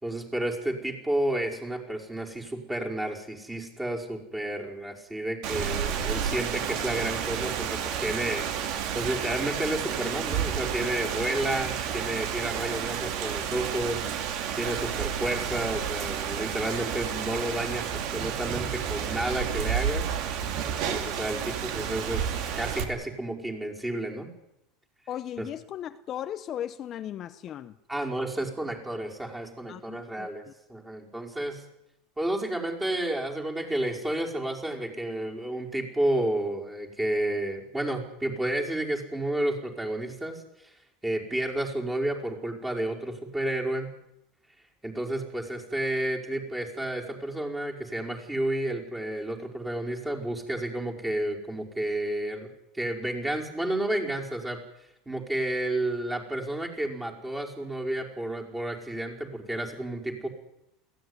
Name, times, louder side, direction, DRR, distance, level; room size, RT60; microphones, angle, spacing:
voice 1, 0.0-8.5 8.9-14.1 14.6-20.1 20.9-24.3 25.4-25.5 27.9-30.4 30.7-31.6 32.2-40.7 41.0-43.9 44.8-52.5 52.7-54.6 55.0-60.3, right 1 dB, 10° right, 0 dB, 5.1 m, -31 dB
Rain, 5.4-22.8, right 8 dB, 60° right, 2.9 m, -31 dB
voice 2, 25.1-27.8 29.7-30.5, left 10 dB, 40° left, 11 dB, 0.8 m, -37 dB
22.0 x 17.0 x 9.8 m, 0.85 s
supercardioid pair, 130°, 0 cm